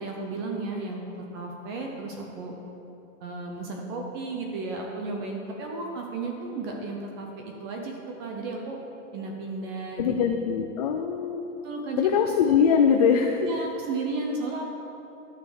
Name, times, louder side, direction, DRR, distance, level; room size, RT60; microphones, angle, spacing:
voice 1, 0.0-2.5 3.2-8.8 9.1-10.1 11.6-12.1 13.4-14.6, right 3 dB, 20° right, 1 dB, 0.5 m, -34 dB
voice 2, 10.0-11.5 12.0-13.5, left 7 dB, 30° left, 3 dB, 0.4 m, -22 dB
11.5 x 6.4 x 6.5 m, 2.9 s
supercardioid pair, 175°, 39 cm